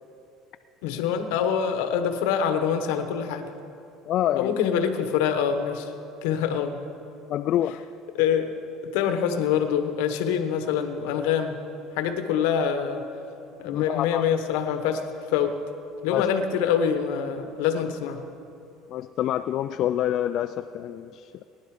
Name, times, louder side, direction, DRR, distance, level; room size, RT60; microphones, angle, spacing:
voice 1, 0.8-3.5 4.4-5.9 6.2-6.7 8.1-8.5 8.9-11.6 12.0-13.0 13.6-15.0 15.3-15.6 16.0-18.2, left 8 dB, 85° left, 8 dB, 1.1 m, -25 dB
voice 2, 4.1-4.6 7.3-7.8 13.6-14.2 16.1-16.3 18.9-21.4, left 12 dB, 50° left, 9 dB, 0.3 m, -27 dB
19.5 x 11.0 x 5.0 m, 2.8 s
cardioid pair, 130°, 0 cm